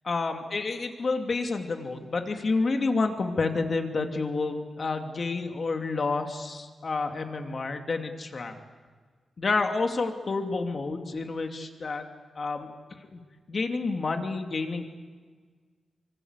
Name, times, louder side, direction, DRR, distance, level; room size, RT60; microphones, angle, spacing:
voice 1, 0.0-8.6 9.4-12.1 12.3-13.2 13.5-14.8, left 3 dB, 45° left, 5 dB, 2.7 m, -29 dB
25.0 x 25.0 x 8.3 m, 1.5 s
wide cardioid pair, 100°, 0 cm